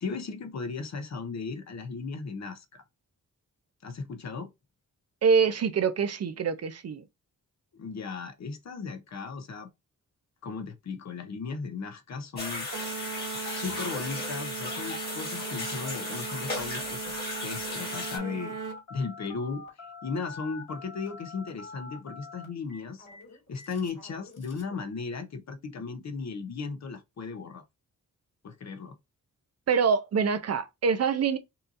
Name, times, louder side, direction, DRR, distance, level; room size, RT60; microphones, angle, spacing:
voice 1, 0.0-2.8 3.8-4.5 7.7-9.7 10.4-12.7 13.4-18.6 18.9-23.1 23.5-27.6 28.4-28.9, left 4 dB, 55° left, 0.7 m, -36 dB
voice 2, 5.2-7.0 29.7-31.4, right 5 dB, 50° right, 0.5 m, -25 dB
sound 1, 12.4-18.2, left 2 dB, 30° left, 1.8 m, -35 dB
sound 2, 12.7-18.8, right 7 dB, 75° right, 0.9 m, -39 dB
Telephone, 17.9-24.8, left 3 dB, 75° left, 3.0 m, -46 dB
5.6 x 2.7 x 2.5 m
wide cardioid pair, 170°, 33 cm